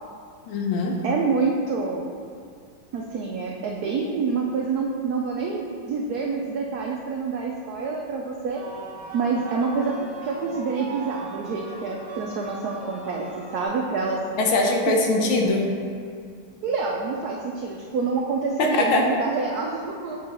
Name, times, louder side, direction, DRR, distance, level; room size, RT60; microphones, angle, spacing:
voice 1, 0.4-1.0 14.4-15.7 18.6-19.1, left 2 dB, 80° left, 1 dB, 1.6 m, -22 dB
voice 2, 1.0-2.1 2.9-8.6 9.1-14.2 14.9-15.0 16.6-20.2, right 4 dB, 85° right, -1 dB, 0.8 m, -27 dB
sound 1, 8.5-13.7, right 3 dB, 35° right, 0.5 m, -39 dB
7.4 x 5.5 x 2.9 m, 2.3 s
omnidirectional pair, 2.3 m